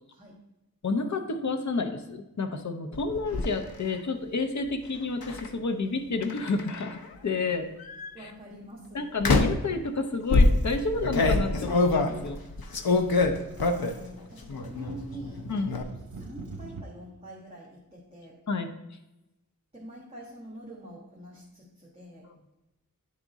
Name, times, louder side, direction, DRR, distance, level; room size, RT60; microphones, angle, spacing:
voice 1, 0.8-7.7 8.2-8.3 8.9-12.4 15.5-15.7 18.5-18.7 22.2-22.3, left 3 dB, 55° left, 7 dB, 0.7 m, -30 dB
sound 1, 2.9-3.5 5.2-5.5 6.2-7.1 7.8-8.1 9.2-9.7 10.3-14.1 14.4-15.0 15.2-15.8, left 2 dB, 85° left, 0.7 m, -25 dB
voice 2, 8.1-9.0 13.1-18.4 19.7-22.2, equal, 15° right, -5 dB, 1.4 m, -46 dB
sound 2, 9.6-10.9 11.2-11.7 12.2-12.5 12.9-16.8, right 4 dB, 60° right, 0.8 m, -45 dB
10.0 x 3.6 x 4.0 m, 0.96 s
wide cardioid pair, 75°, 35 cm